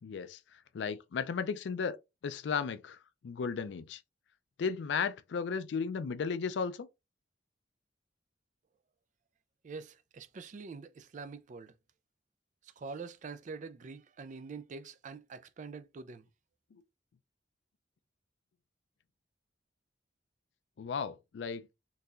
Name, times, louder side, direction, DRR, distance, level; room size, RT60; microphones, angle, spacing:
voice 1, 0.0-2.0 2.2-4.0 4.6-6.9 16.7-16.8 20.8-21.7, left 6 dB, 70° left, 0.4 m, -35 dB
voice 2, 9.6-11.7 12.6-16.3, right 4 dB, 40° right, 0.4 m, -45 dB
3.9 x 2.7 x 2.4 m
head